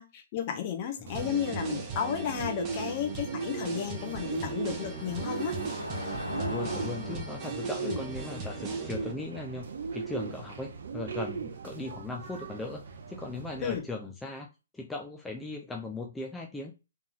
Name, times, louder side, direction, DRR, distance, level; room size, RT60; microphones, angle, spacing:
voice 1, 0.0-5.6 7.8-8.0 13.6-13.8, left 9 dB, 35° left, 0.9 m, -33 dB
voice 2, 1.0-1.3 6.4-12.8 13.1-16.8, left 3 dB, 5° left, 0.5 m, -38 dB
Car passing by / Engine, 1.1-11.8, left 1 dB, 80° left, 1.0 m, -43 dB
sound 1, 1.1-9.1, right 3 dB, 25° right, 0.8 m, -39 dB
Bird, 1.1-13.8, right 5 dB, 55° right, 0.6 m, -38 dB
3.5 x 3.2 x 2.4 m
figure-of-eight pair, 125°, 0 cm